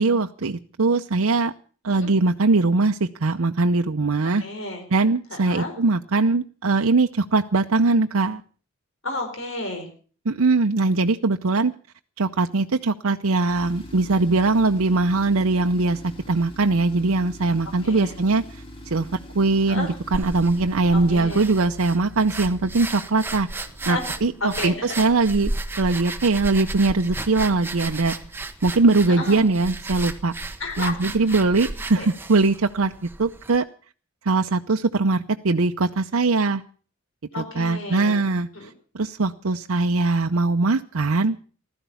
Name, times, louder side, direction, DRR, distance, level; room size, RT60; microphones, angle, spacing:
voice 1, 0.0-1.5 1.8-4.4 4.9-8.4 10.3-11.7 12.2-19.1 19.3-23.5 23.9-28.1 28.6-30.3 30.8-33.7 34.2-36.6 37.4-41.4, right 3 dB, 70° right, 5 dB, 0.7 m, -21 dB
voice 2, 4.4-4.8 5.3-5.7 9.0-9.9 17.8-18.1 19.7-19.9 20.9-21.4 23.8-25.1 29.1-29.5 30.6-31.3 31.9-32.1 37.3-38.2 38.5-38.7, left 2 dB, 60° left, 4 dB, 4.7 m, -32 dB
Tools, 13.5-23.0, equal, 25° left, 2.5 m, -42 dB
sound 1, 20.1-33.6, right 2 dB, 10° right, 1.0 m, -34 dB
15.5 x 13.5 x 7.0 m, 0.42 s
head